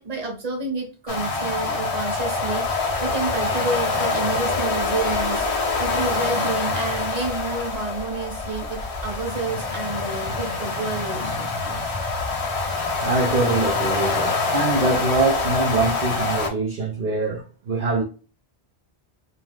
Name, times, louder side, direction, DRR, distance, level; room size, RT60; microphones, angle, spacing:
voice 1, 0.0-11.9, right 3 dB, 40° right, 1.0 m, -30 dB
sound 1, 1.1-16.5, left 3 dB, 40° left, 0.6 m, -25 dB
voice 2, 13.0-18.0, right 3 dB, 60° right, 0.7 m, -23 dB
2.4 x 2.3 x 3.2 m
omnidirectional pair, 1.1 m